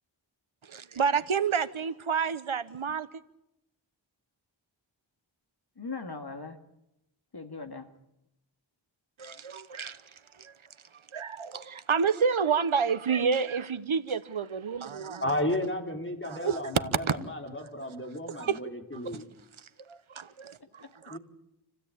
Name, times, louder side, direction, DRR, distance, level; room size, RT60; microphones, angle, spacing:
voice 1, 0.6-3.1 9.2-10.0 10.4-10.5 11.1-15.2 16.2-16.6 17.1-17.2 18.3-18.6 19.0-19.2 19.9-21.2, right 6 dB, 90° right, 1.1 m, -29 dB
voice 2, 5.8-6.6 7.3-7.9 20.6-21.2, left 4 dB, 55° left, 2.2 m, -40 dB
voice 3, 15.2-19.2 21.1-21.2, left 1 dB, 25° left, 4.1 m, -33 dB
28.0 x 16.0 x 8.7 m
wide cardioid pair, 65°, 47 cm